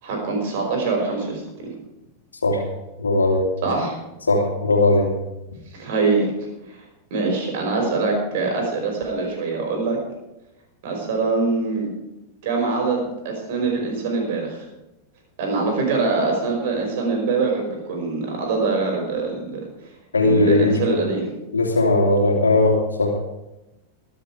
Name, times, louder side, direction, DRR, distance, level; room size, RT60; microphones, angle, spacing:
voice 1, 0.0-1.7 3.6-4.0 5.7-6.3 7.1-10.0 10.8-11.9 12.4-14.6 15.4-19.6 20.2-21.3, right 3 dB, 50° right, 1 dB, 5.5 m, -23 dB
voice 2, 3.0-3.4 4.3-5.1 20.1-21.0 21.5-23.1, left 2 dB, 75° left, 1 dB, 2.8 m, -18 dB
22.5 x 7.6 x 4.9 m, 0.95 s
figure-of-eight pair, 90°, 0 cm